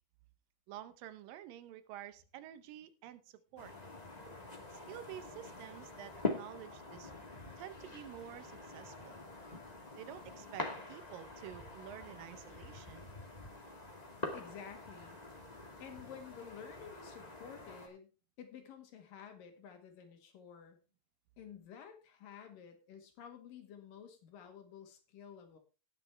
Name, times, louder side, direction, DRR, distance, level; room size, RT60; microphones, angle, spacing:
voice 1, 0.7-3.7 4.7-7.1 7.6-9.2 10.0-13.1, right 12 dB, 85° right, 12 dB, 2.6 m, -50 dB
sound 1, 3.6-17.9, left 2 dB, 20° left, 1.3 m, -45 dB
voice 2, 14.3-15.2 15.8-18.1 18.4-20.8 21.4-25.6, left 7 dB, 75° left, 6 dB, 3.5 m, -52 dB
18.5 x 7.2 x 3.3 m, 0.32 s
omnidirectional pair, 3.9 m